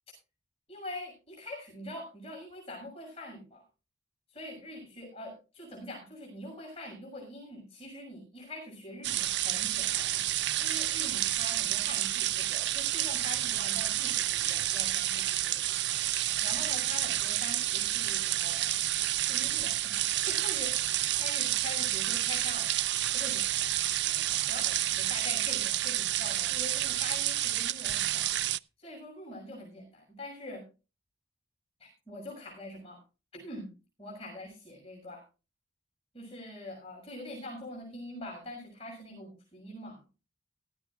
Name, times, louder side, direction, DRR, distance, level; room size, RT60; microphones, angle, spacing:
voice 1, 0.7-3.6 4.3-15.7 16.4-18.8 19.2-19.9 20.3-20.9 21.2-22.7 23.1-23.4 24.0-28.3 28.8-30.6 31.8-33.0 33.3-33.7 34.0-35.2 36.1-40.0, left 1 dB, 30° left, 0 dB, 6.5 m, -44 dB
sound 1, 9.0-28.6, right 13 dB, 65° right, 0.5 m, -30 dB
18.0 x 14.0 x 2.5 m, 0.32 s
head